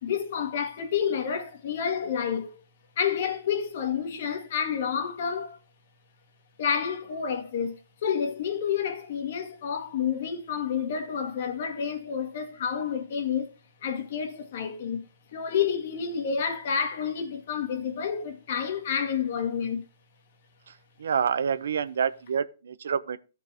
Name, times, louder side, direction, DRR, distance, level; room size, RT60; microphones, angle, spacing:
voice 1, 0.0-2.6 3.0-5.6 6.6-13.5 13.8-15.0 15.3-19.8, left 7 dB, 55° left, 1.8 m, -29 dB
voice 2, 20.7-23.2, right 7 dB, 85° right, 0.7 m, -28 dB
15.5 x 5.4 x 2.9 m
hypercardioid pair, 155°, 0 cm